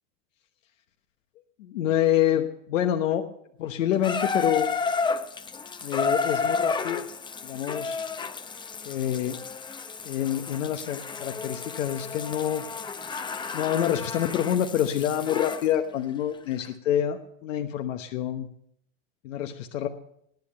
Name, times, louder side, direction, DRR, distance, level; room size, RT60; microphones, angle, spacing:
voice 1, 1.6-3.2 3.6-4.7 5.8-7.0 7.4-8.0 8.8-9.4 10.0-12.6 13.5-18.5 19.2-19.9, left 11 dB, 85° left, 6 dB, 1.1 m, -27 dB
Water tap faucet / Bathtub (filling or washing), 4.0-15.7 16.6-16.7, left 4 dB, 10° left, 0.6 m, -31 dB
19.5 x 8.7 x 6.9 m, 0.72 s
supercardioid pair, 130°, 38 cm